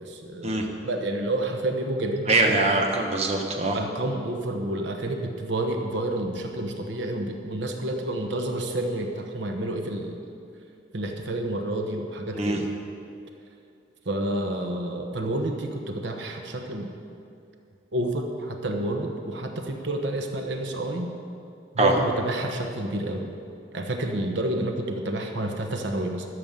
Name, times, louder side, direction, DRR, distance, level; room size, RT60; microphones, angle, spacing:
voice 1, 0.0-2.7 3.7-10.2 10.9-12.7 14.0-16.9 17.9-21.1 21.7-23.3 23.7-26.3, right 1 dB, 80° right, 3 dB, 1.2 m, -29 dB
voice 2, 2.3-3.8 12.3-12.6 21.8-21.9, right 2 dB, 35° right, 1 dB, 1.1 m, -23 dB
13.0 x 7.0 x 7.3 m, 2.5 s
head